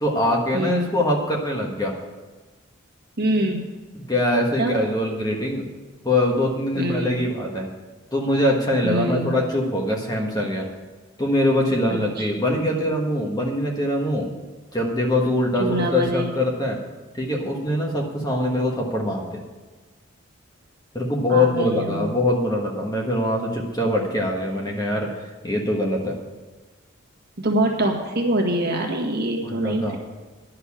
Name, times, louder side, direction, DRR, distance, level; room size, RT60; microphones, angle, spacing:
voice 1, 0.0-1.9 4.1-5.6 6.0-7.7 8.1-10.7 11.2-14.3 14.7-16.8 17.1-19.4 20.9-26.2 29.4-30.0, left 1 dB, 20° left, -1 dB, 1.4 m, -23 dB
voice 2, 0.5-0.9 3.2-3.6 4.6-4.8 6.8-7.2 8.8-9.3 11.9-12.3 15.6-16.3 21.3-22.1 27.4-30.0, right 1 dB, 45° right, 0 dB, 1.7 m, -24 dB
11.0 x 6.8 x 8.5 m, 1.3 s
head